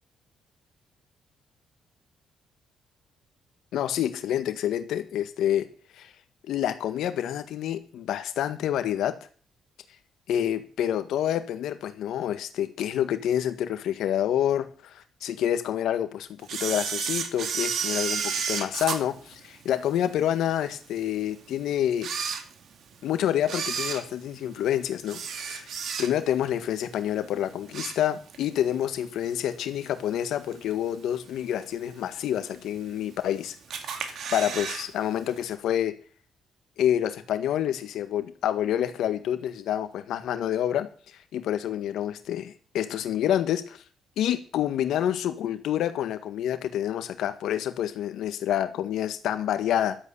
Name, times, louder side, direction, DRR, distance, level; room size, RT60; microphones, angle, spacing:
voice 1, 3.7-5.7 5.9-6.1 6.5-9.2 10.3-22.1 23.0-25.7 26.0-33.6 34.0-35.9 36.8-40.9 41.3-43.8 44.2-50.0, left 10 dB, 80° left, 9 dB, 1.7 m, -28 dB
Camera, 16.5-20.1 20.6-20.7 21.4-21.5 21.9-22.9 23.4-26.4 26.8-27.1 27.4-28.5 28.8-28.9 29.8-29.9 30.5-30.9 31.3-31.4 31.6-31.7 31.9-32.0 32.8-33.3 33.7-34.9 35.1-35.2 35.5-35.6, right 6 dB, 65° right, 2.2 m, -32 dB
12.5 x 8.4 x 7.0 m, 0.41 s
cardioid pair, 90°, 0 cm